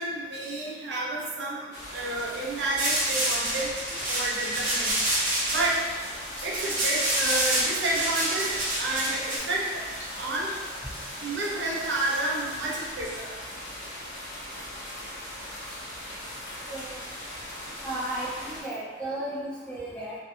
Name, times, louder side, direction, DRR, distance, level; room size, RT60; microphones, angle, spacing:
voice 1, 0.0-3.8 4.1-5.0 5.5-5.8 6.4-10.5 11.2-13.3, right 2 dB, 85° right, -3 dB, 0.5 m, -30 dB
sound 1, 1.7-18.6, left 1 dB, 75° left, 0.7 m, -40 dB
sound 2, 2.8-9.4, right 1 dB, 45° right, 0.7 m, -27 dB
sound 3, 5.5-12.9, equal, 40° left, 1.2 m, -44 dB
voice 2, 16.7-17.0 17.8-20.2, right 1 dB, 5° left, -9 dB, 0.5 m, -34 dB
2.6 x 2.2 x 2.6 m, 1.4 s
head